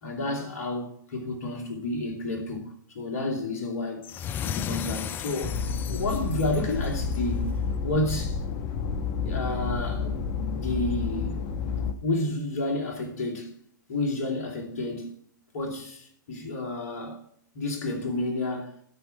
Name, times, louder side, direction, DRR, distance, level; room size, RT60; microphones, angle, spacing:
voice 1, 0.0-4.0 4.4-5.6 5.9-7.5 7.8-8.4 9.2-10.2 10.6-11.4 12.0-13.5 13.9-15.1 15.5-17.2 17.5-18.7, left 2 dB, 50° left, 2.9 m, -30 dB
sound 1, 4.0-7.3, left 9 dB, 20° left, 0.3 m, -35 dB
sound 2, 5.4-11.9, left 5 dB, 35° left, 0.9 m, -30 dB
13.0 x 4.7 x 7.3 m
figure-of-eight pair, 115°, 11 cm